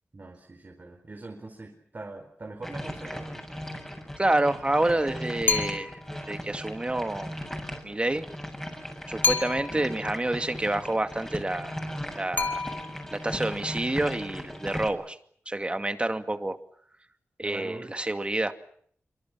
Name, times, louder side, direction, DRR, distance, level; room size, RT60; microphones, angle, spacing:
voice 1, 0.1-3.4 9.7-10.0 17.4-17.9, right 2 dB, 45° right, 3 dB, 4.6 m, -42 dB
sound 1, 2.6-14.9, equal, 10° left, 7.4 m, -37 dB
voice 2, 4.2-7.4 7.8-8.2 9.1-12.6 13.1-15.2 15.5-16.6 17.4-18.5, right 2 dB, 25° right, 8 dB, 2.3 m, -28 dB
sound 2, 5.5-6.1 9.2-9.9 12.4-13.2, left 4 dB, 40° left, 3.2 m, -28 dB
27.0 x 25.0 x 7.5 m, 0.63 s
wide cardioid pair, 65°, 5 cm